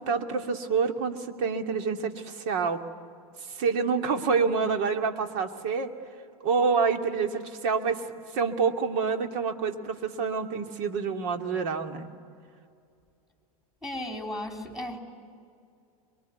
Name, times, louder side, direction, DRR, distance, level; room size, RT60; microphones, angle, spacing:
voice 1, 0.0-2.8 3.5-5.9 6.4-8.0 8.3-12.1, right 5 dB, 55° right, 5 dB, 2.7 m, -27 dB
voice 2, 13.8-15.0, left 1 dB, ahead, 3 dB, 3.4 m, -35 dB
25.0 x 22.5 x 9.5 m, 2.3 s
hypercardioid pair, 115°, 19 cm